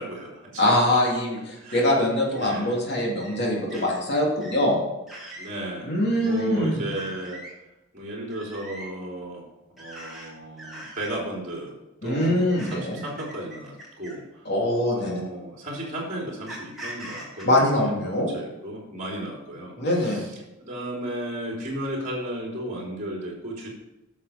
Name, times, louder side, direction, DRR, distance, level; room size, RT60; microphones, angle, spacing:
voice 1, 0.0-0.6 1.6-2.0 2.3-2.8 5.4-5.9 6.2-7.4 7.9-9.5 9.8-11.7 12.0-14.5 14.9-17.7 18.1-23.7, right 1 dB, 35° right, -2 dB, 3.5 m, -34 dB
voice 2, 0.6-4.8 5.8-6.8 12.0-13.0 14.4-15.2 17.4-18.3 19.8-20.2, left 1 dB, 50° left, -2 dB, 2.8 m, -23 dB
sound 1, 1.7-1.9 2.3-2.6 3.2-3.4 3.7-4.0 4.4-4.7 5.1-5.5 6.0-6.5 6.9-7.5 8.3-8.9 9.8-10.3 10.6-11.1 12.1-14.3 15.2-15.3 16.5-17.4, right 1 dB, ahead, 3.0 m, -42 dB
11.0 x 7.1 x 5.1 m, 0.96 s
head